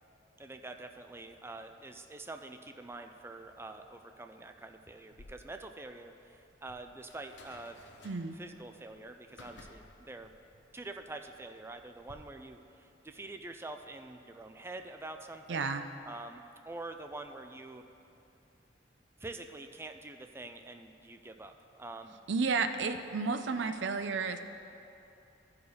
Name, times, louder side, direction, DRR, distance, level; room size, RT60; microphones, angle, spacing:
voice 1, 0.4-7.8 8.4-10.3 10.7-15.7 16.0-17.8 19.2-22.2, right 2 dB, 15° right, 6 dB, 0.4 m, -46 dB
sound 1, 5.1-12.1, left 2 dB, 75° left, 1.0 m, -57 dB
voice 2, 8.0-8.4 15.5-15.9 22.3-24.4, right 4 dB, 70° right, 9 dB, 0.5 m, -32 dB
14.0 x 4.7 x 5.0 m, 2.8 s
head